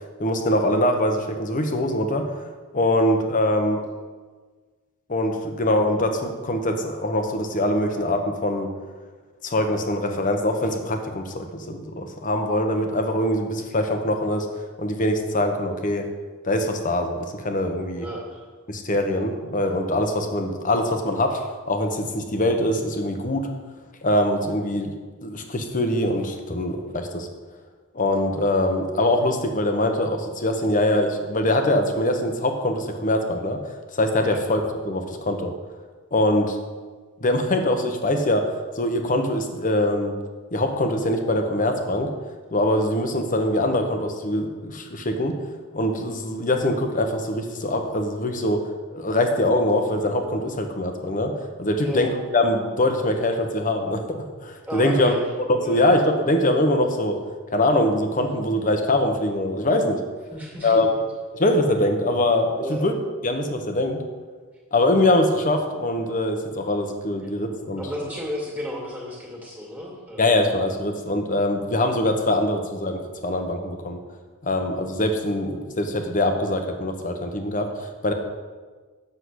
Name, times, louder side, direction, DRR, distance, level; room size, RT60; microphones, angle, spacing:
voice 1, 0.2-2.3 2.7-3.8 5.1-8.7 9.4-14.5 14.8-16.0 16.4-18.1 18.7-21.4 21.7-23.5 24.0-24.9 25.2-27.3 27.9-33.6 33.9-35.5 36.1-36.6 37.2-38.5 38.8-40.1 40.5-42.1 42.5-45.3 45.7-48.6 48.9-51.3 51.6-54.0 54.4-55.1 55.5-57.2 57.5-60.0 60.6-60.9 61.3-62.9 63.2-64.0 64.7-67.8 70.2-74.0 74.4-78.1, left 1 dB, 35° left, 5 dB, 1.0 m, -23 dB
voice 2, 17.8-18.5 34.3-34.5 51.8-52.0 54.7-55.2 55.6-55.9 60.3-61.0 62.6-62.9 67.8-70.2, equal, 5° right, -3 dB, 2.3 m, -33 dB
8.2 x 6.6 x 6.3 m, 1.4 s
head